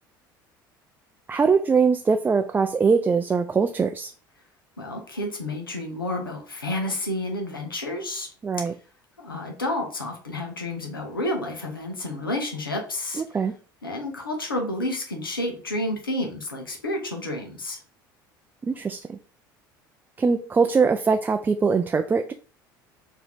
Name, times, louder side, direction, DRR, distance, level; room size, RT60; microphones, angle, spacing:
voice 1, 1.3-4.1 8.4-8.7 13.2-13.5 18.6-19.2 20.2-22.3, right 5 dB, 15° right, 0.3 m, -22 dB
voice 2, 4.8-8.3 9.2-13.4 13.8-17.8, left 1 dB, 85° left, 0.8 m, -30 dB
4.6 x 2.8 x 3.4 m
figure-of-eight pair, 65°, 11 cm